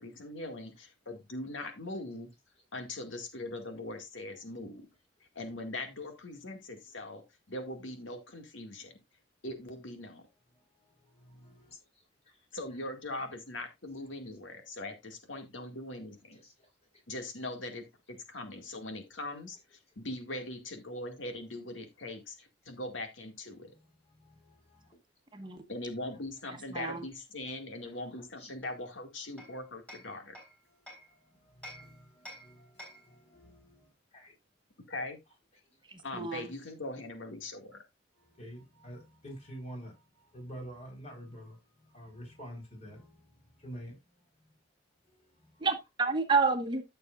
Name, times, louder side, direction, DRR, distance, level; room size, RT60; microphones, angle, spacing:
voice 1, 0.0-2.3 2.7-4.9 5.4-7.2 7.5-9.0 9.4-10.2 12.5-16.4 17.1-22.4 22.7-23.7 25.7-30.4 34.9-35.2 36.0-37.8, left 2 dB, 85° left, 2.1 m, -41 dB
voice 2, 10.8-11.8 12.3-12.4 16.3-16.5 24.2-24.9 28.4-28.5 31.1-34.3 38.2-41.6 41.9-44.0 45.5-45.7, equal, 35° left, 4.4 m, -48 dB
voice 3, 26.7-27.0 35.9-36.5 45.6-46.8, right 4 dB, 25° right, 1.1 m, -29 dB
Hammer, 28.6-31.1 31.6-33.2, equal, 5° left, 4.2 m, -51 dB
14.0 x 6.7 x 2.5 m
head